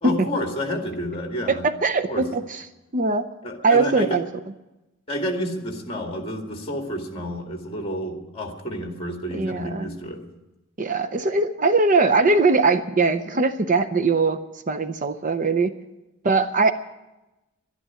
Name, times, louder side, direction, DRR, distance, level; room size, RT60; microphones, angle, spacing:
voice 1, 0.0-1.7 2.1-2.3 3.4-4.2 5.1-10.3, equal, 25° left, 3 dB, 2.0 m, -30 dB
voice 2, 1.5-2.6 2.9-3.3 3.6-4.2 9.3-9.9 10.8-14.4 14.7-15.7 16.2-16.7, right 3 dB, 35° right, 9 dB, 0.6 m, -21 dB
12.0 x 11.0 x 9.0 m, 0.99 s
head